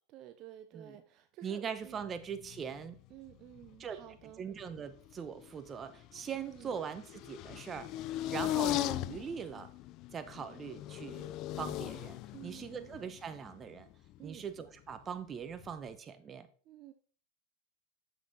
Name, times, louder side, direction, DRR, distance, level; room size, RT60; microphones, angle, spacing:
voice 1, 0.1-2.1 3.1-4.5 6.3-6.8 12.3-12.9 14.2-14.4 16.6-16.9, right 13 dB, 50° right, 9 dB, 0.6 m, -52 dB
voice 2, 1.4-3.0 3.8-4.0 4.4-7.9 8.3-9.7 10.1-13.9 14.2-16.5, right 7 dB, 25° right, 10 dB, 0.9 m, -41 dB
sound 1, 2.0-3.0 3.3-4.2 4.6-14.9 15.5-16.0, left 14 dB, 50° left, 0.4 m, -39 dB
7.2 x 6.1 x 4.0 m, 0.43 s
hypercardioid pair, 110°, 0 cm